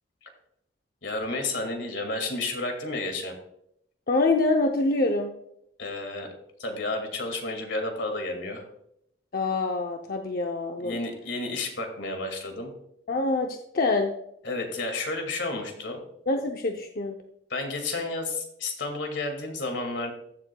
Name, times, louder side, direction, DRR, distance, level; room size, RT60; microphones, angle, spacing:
voice 1, 1.0-3.3 5.8-6.3 6.6-8.6 10.8-12.7 14.4-16.0 17.5-20.1, left 2 dB, 85° left, 4 dB, 2.1 m, -31 dB
voice 2, 4.1-5.3 9.3-11.0 13.1-14.1 16.3-17.2, left 2 dB, 55° left, 3 dB, 0.6 m, -25 dB
14.5 x 7.5 x 2.3 m, 0.75 s
head